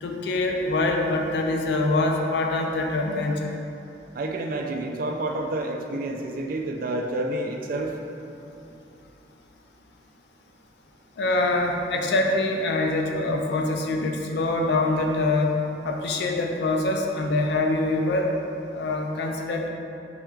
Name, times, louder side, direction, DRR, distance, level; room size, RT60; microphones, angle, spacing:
voice 1, 0.0-3.5 11.2-18.3 18.7-19.7, left 2 dB, 65° left, 2 dB, 0.4 m, -24 dB
voice 2, 4.1-8.0, right 2 dB, 50° right, 2 dB, 0.3 m, -29 dB
4.4 x 3.4 x 2.4 m, 2.8 s
head